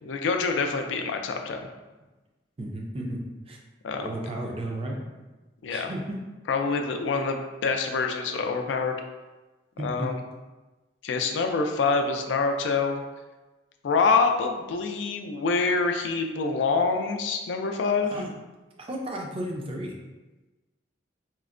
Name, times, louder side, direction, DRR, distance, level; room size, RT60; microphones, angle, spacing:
voice 1, 0.0-1.7 3.8-4.1 5.6-5.9 6.5-8.9 9.8-10.2 11.0-13.0 13.8-18.1, left 4 dB, 70° left, 4 dB, 0.3 m, -26 dB
voice 2, 2.6-3.2 3.5-3.6 4.0-5.0 5.7-6.2 9.8-10.1 18.0-18.3 18.8-20.0, right 1 dB, 30° right, 0 dB, 0.4 m, -33 dB
4.3 x 2.1 x 2.4 m, 1.2 s
head